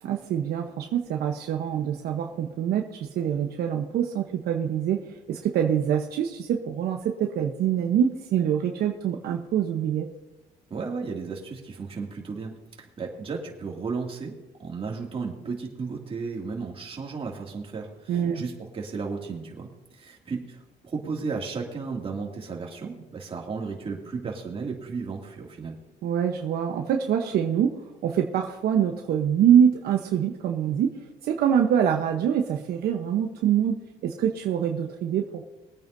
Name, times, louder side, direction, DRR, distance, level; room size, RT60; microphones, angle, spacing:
voice 1, 0.0-10.1 18.1-18.4 26.0-35.4, right 9 dB, 70° right, 3 dB, 1.0 m, -25 dB
voice 2, 10.7-12.5 12.8-20.6 20.8-25.8, right 4 dB, 35° right, 0 dB, 2.6 m, -34 dB
23.0 x 9.0 x 2.7 m, 1.1 s
cardioid pair, 110°, 17 cm